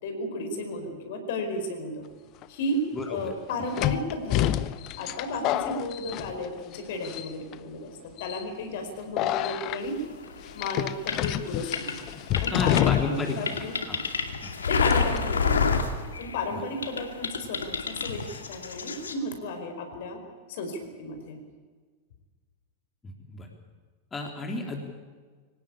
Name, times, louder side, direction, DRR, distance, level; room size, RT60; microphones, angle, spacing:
voice 1, 0.0-2.1 2.5-10.0 10.5-12.0 12.4-13.7 14.7-15.6 16.2-20.2 20.5-21.4, left 1 dB, 55° left, 6 dB, 5.0 m, -33 dB
sound 1, 2.4-2.5 3.8-6.8 7.0-7.5 8.2-8.4 9.2-9.8 10.6-13.3 13.6-13.7 14.9-15.2, left 13 dB, 40° left, 0.9 m, -28 dB
voice 2, 2.9-3.3 12.4-14.0 14.4-14.5 23.0-23.5 24.1-24.8, left 2 dB, 15° left, 2 dB, 3.4 m, -33 dB
sound 2, 10.3-16.5 16.8-19.1, left 5 dB, 70° left, 2.3 m, -28 dB
24.5 x 18.5 x 8.7 m, 1.5 s
figure-of-eight pair, 90°, 0 cm